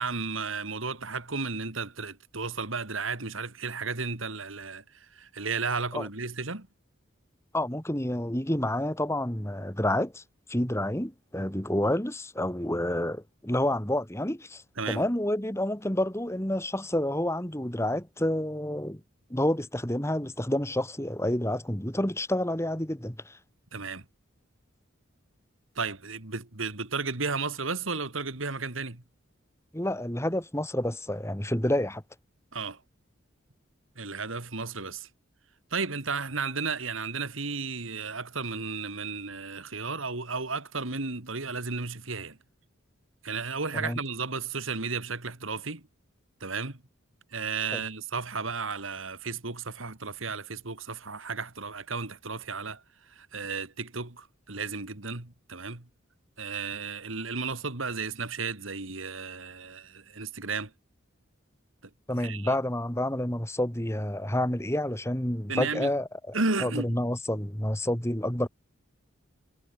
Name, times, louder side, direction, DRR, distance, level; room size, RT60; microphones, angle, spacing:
voice 1, 0.0-6.7 14.8-15.0 23.7-24.1 25.8-29.0 32.5-32.8 34.0-35.1 35.7-42.4 43.2-45.9 46.4-46.8 47.3-55.9 56.4-60.7 62.2-62.6 65.5-65.9 66.3-67.0, right 4 dB, 70° right, 2.6 m, -33 dB
voice 2, 7.5-10.2 10.5-19.0 19.3-23.4 29.7-32.0 43.7-44.0 47.7-47.8 62.1-66.1 66.6-68.5, left 1 dB, 15° left, 2.5 m, -29 dB
head